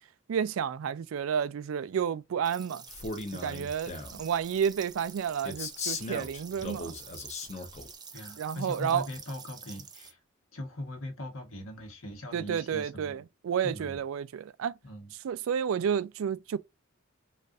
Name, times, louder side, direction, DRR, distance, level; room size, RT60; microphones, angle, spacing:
voice 1, 0.3-2.8 3.4-6.9 8.4-9.1 12.3-14.7 15.2-16.6, right 7 dB, 80° right, 0.3 m, -31 dB
sound 1, 2.4-10.1, right 6 dB, 20° right, 0.5 m, -48 dB
Male speech man speaking, 2.9-4.2 5.4-7.9, left 3 dB, 35° left, 0.7 m, -38 dB
voice 2, 8.1-10.2 10.5-13.3 13.6-14.0 14.8-15.1, left 1 dB, 85° left, 1.2 m, -40 dB
4.1 x 2.4 x 2.4 m
head